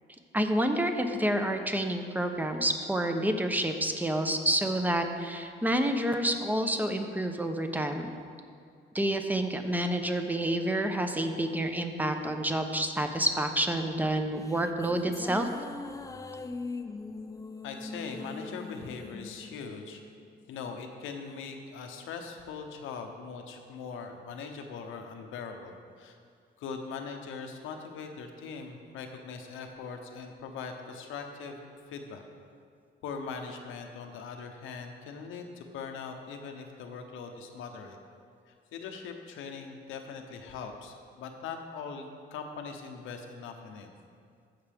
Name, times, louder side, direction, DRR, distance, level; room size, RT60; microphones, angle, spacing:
voice 1, 0.3-8.1 8.9-15.5, right 1 dB, 10° right, 5 dB, 0.8 m, -28 dB
sound 1, 14.2-20.7, left 3 dB, 15° left, 0.4 m, -42 dB
voice 2, 17.6-20.0 20.5-26.2 26.6-31.6 31.9-32.2 33.0-38.0 38.5-43.9, left 5 dB, 90° left, 4 dB, 0.9 m, -41 dB
15.0 x 5.9 x 3.5 m, 2.3 s
cardioid pair, 90°, 20 cm